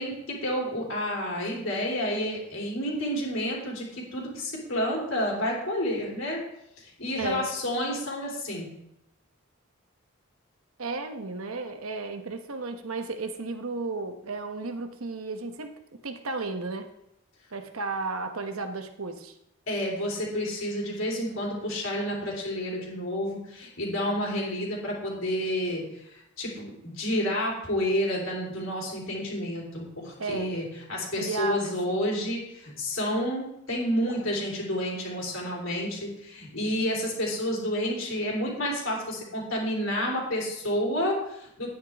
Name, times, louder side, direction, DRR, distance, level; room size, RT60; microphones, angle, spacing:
voice 1, 0.0-6.4 7.0-8.7 19.7-26.0 26.4-41.7, equal, 75° left, -3 dB, 3.5 m, -30 dB
voice 2, 10.8-16.9 17.5-19.3 30.2-30.6 31.2-32.0, right 3 dB, 85° right, 7 dB, 1.0 m, -33 dB
10.5 x 9.5 x 3.5 m, 0.80 s
head